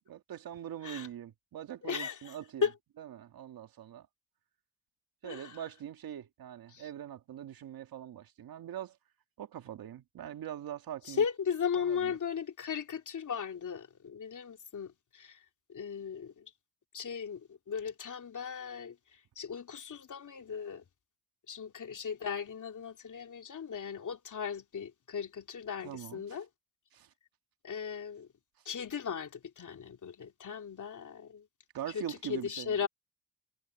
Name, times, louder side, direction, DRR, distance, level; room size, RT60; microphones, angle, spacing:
voice 1, 0.1-2.6 3.0-4.1 5.2-9.0 9.4-11.2 11.8-12.2 25.8-26.4 26.9-27.1 31.7-32.8, right 10 dB, 75° right, 2.1 m, -43 dB
voice 2, 1.8-2.3 2.6-2.7 5.2-5.5 6.7-6.9 11.1-15.4 15.7-16.5 16.9-19.0 19.4-20.8 21.5-26.5 27.6-28.3 28.6-31.5 31.9-32.9, left 7 dB, 55° left, 2.9 m, -37 dB
cardioid pair, 65°, 36 cm